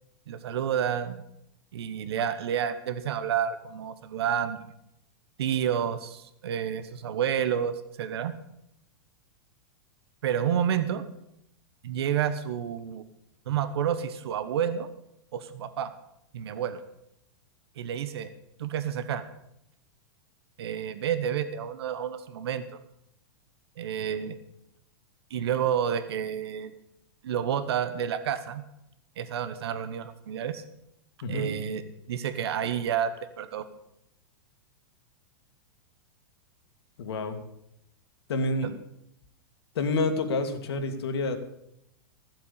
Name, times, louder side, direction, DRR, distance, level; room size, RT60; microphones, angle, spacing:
voice 1, 0.3-1.2 1.7-4.7 5.4-8.3 10.2-11.0 11.8-13.0 13.5-14.9 15.3-15.9 16.3-16.8 17.8-18.3 18.6-19.3 20.6-22.6 23.8-24.3 25.3-26.7 27.2-28.6 29.2-30.6 31.3-31.8 32.1-33.7 38.6-38.7, right 9 dB, 75° right, 11 dB, 1.2 m, -29 dB
voice 2, 37.0-37.4 38.3-38.7 39.8-41.4, left 2 dB, 80° left, 6 dB, 2.3 m, -28 dB
15.0 x 7.8 x 8.5 m, 0.80 s
supercardioid pair, 160°, 13 cm